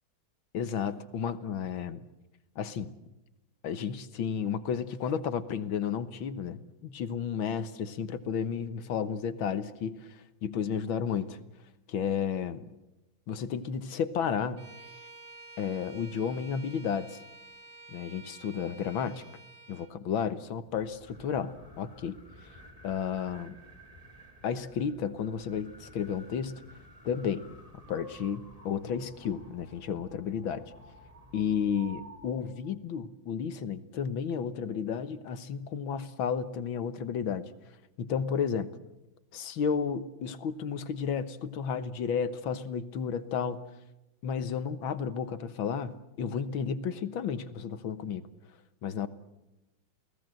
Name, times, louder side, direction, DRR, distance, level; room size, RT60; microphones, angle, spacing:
voice 1, 0.5-2.0 2.6-2.9 3.6-10.1 10.4-11.4 11.9-12.6 13.3-14.6 15.6-17.2 17.9-19.2 19.7-22.2 22.8-23.6 24.4-26.6 27.1-27.4 27.9-30.6 31.3-37.5 38.0-38.7 39.3-43.6 44.2-48.2 48.8-49.1, left 7 dB, 75° left, 12 dB, 1.9 m, -32 dB
Bowed string instrument, 14.6-20.0, right 3 dB, 35° right, 2.5 m, -51 dB
sound 1, 20.6-32.7, right 1 dB, 15° right, 3.4 m, -53 dB
29.0 x 18.5 x 7.7 m, 0.97 s
omnidirectional pair, 2.3 m